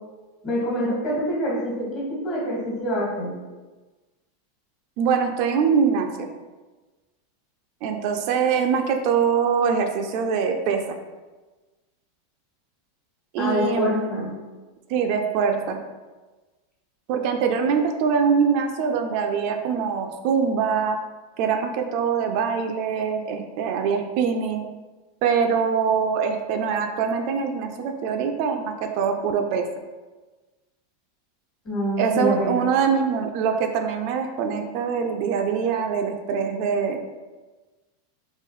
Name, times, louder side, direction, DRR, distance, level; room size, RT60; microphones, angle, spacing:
voice 1, 0.4-3.3 13.4-14.3 31.6-32.6, equal, 35° left, -4 dB, 1.3 m, -26 dB
voice 2, 5.0-6.3 7.8-11.0 13.3-14.2 14.9-15.8 17.1-21.0 21.4-24.6 25.2-29.7 32.0-37.0, right 6 dB, 55° right, 5 dB, 0.3 m, -23 dB
3.7 x 2.5 x 3.1 m, 1.2 s
supercardioid pair, 135°, 0 cm